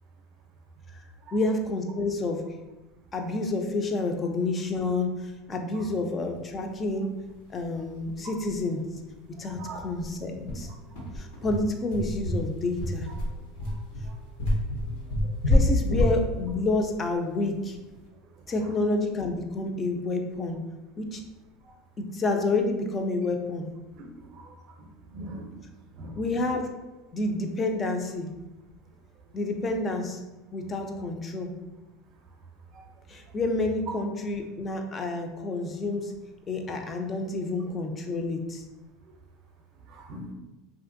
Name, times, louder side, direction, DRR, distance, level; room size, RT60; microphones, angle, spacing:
voice 1, 1.3-2.4 3.1-7.2 7.5-8.8 9.4-10.7 11.2-13.1 15.5-17.8 18.5-20.6 21.0-21.2 22.0-23.7 26.2-26.6 27.1-28.3 29.3-30.2 30.5-31.5 33.1-36.2 36.5-38.6, left 2 dB, 25° left, 4 dB, 0.3 m, -29 dB
sound 1, 7.6-7.7 8.0-8.1 8.4-8.6 8.9-9.0 9.5-17.9, left 1 dB, 80° left, 0.8 m, -27 dB
voice 2, 9.4-9.8 11.0-11.1 14.8-14.9 15.2-15.3 23.9-24.1 24.3-24.5 24.8-25.5 26.0-26.2 39.9-40.3, right 1 dB, 45° right, 2 dB, 0.5 m, -41 dB
2.9 x 2.5 x 2.5 m, 1.1 s
supercardioid pair, 145°, 0 cm